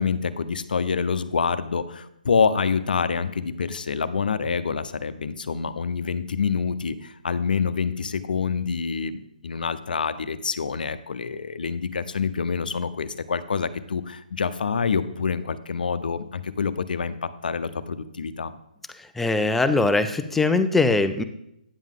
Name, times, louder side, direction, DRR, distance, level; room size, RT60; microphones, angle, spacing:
voice 1, 0.0-18.5, left 5 dB, 70° left, 13 dB, 0.7 m, -26 dB
voice 2, 19.2-21.2, left 3 dB, 5° left, 10 dB, 0.3 m, -21 dB
9.1 x 7.4 x 3.7 m, 0.81 s
hypercardioid pair, 145°, 5 cm